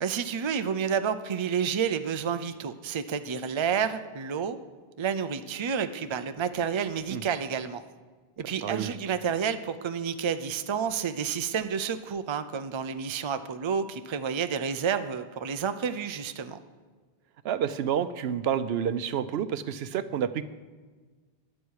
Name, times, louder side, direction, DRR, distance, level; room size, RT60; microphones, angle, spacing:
voice 1, 0.0-4.6 5.0-7.8 8.4-16.6, right 7 dB, 35° right, 10 dB, 0.5 m, -30 dB
voice 2, 8.6-9.2 17.4-20.4, right 8 dB, 85° right, 13 dB, 0.8 m, -29 dB
20.0 x 7.5 x 4.8 m, 1.4 s
omnidirectional pair, 1.0 m